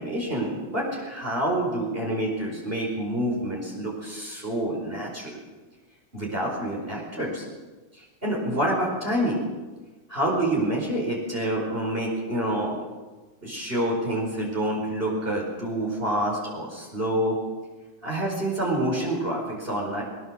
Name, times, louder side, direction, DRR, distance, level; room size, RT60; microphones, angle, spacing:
voice 1, 0.0-5.3 6.1-7.5 8.2-9.4 10.1-12.8 13.4-17.4 18.0-20.0, right 1 dB, 25° right, -3 dB, 5.2 m, -27 dB
22.0 x 21.5 x 6.4 m, 1.3 s
omnidirectional pair, 2.2 m